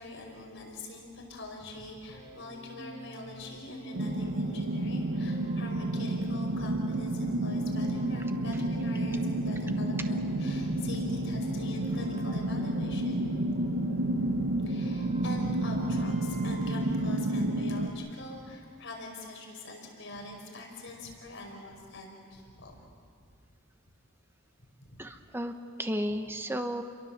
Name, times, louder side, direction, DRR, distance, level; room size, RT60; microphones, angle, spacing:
voice 1, 0.0-13.2 14.0-14.2 14.6-22.8 24.8-25.0, left 2 dB, 65° left, 1 dB, 5.4 m, -44 dB
sound 1, 2.1-16.8, right 3 dB, 30° right, 3.0 m, -46 dB
sound 2, 3.9-17.9, right 1 dB, 80° right, 1.7 m, -30 dB
voice 2, 25.0-26.8, equal, 10° right, 6 dB, 1.2 m, -33 dB
30.0 x 23.0 x 7.4 m, 2.1 s
head